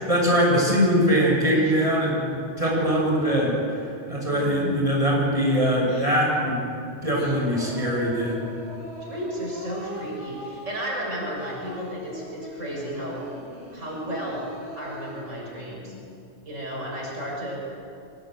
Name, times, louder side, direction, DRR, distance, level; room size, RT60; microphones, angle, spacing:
voice 1, 0.0-6.7 7.0-8.4, equal, 25° right, -3 dB, 7.4 m, -22 dB
voice 2, 4.3-4.8 9.0-13.3 13.7-15.9 16.5-17.6, equal, 80° right, -2 dB, 7.0 m, -33 dB
Singing, 5.8-6.4 6.9-15.2, equal, 65° left, 8.0 m, -41 dB
24.5 x 23.0 x 9.3 m, 2.6 s
omnidirectional pair, 1.3 m